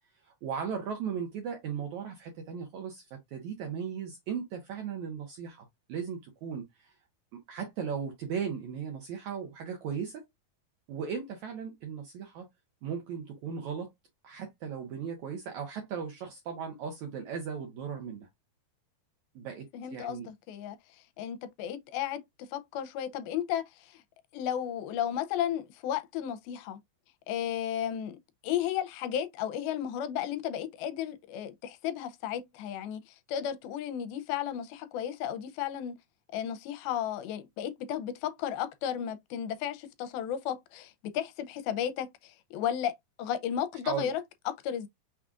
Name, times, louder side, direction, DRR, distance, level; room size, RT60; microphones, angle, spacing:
voice 1, 0.2-6.9 7.3-10.3 10.9-12.5 12.8-13.9 14.2-18.3 19.3-19.6 19.9-20.3 43.8-44.1, right 7 dB, 75° right, 1.7 m, -37 dB
voice 2, 19.7-20.8 21.2-22.2 22.5-24.0 24.3-26.8 27.3-28.2 28.4-36.0 36.3-42.9 43.2-44.2 44.5-44.9, left 10 dB, 80° left, 2.4 m, -34 dB
6.0 x 2.4 x 3.6 m
omnidirectional pair, 4.4 m